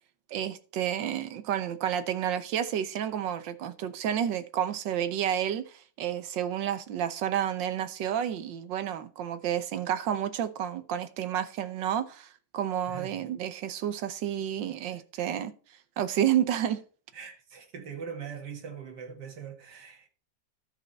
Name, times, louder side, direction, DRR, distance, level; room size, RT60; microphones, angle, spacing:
voice 1, 0.3-15.5 16.0-16.8, right 10 dB, 85° right, 1.6 m, -30 dB
voice 2, 12.9-13.3 15.2-15.3 17.1-20.1, right 6 dB, 65° right, 2.2 m, -42 dB
13.0 x 5.8 x 4.0 m
omnidirectional pair, 1.9 m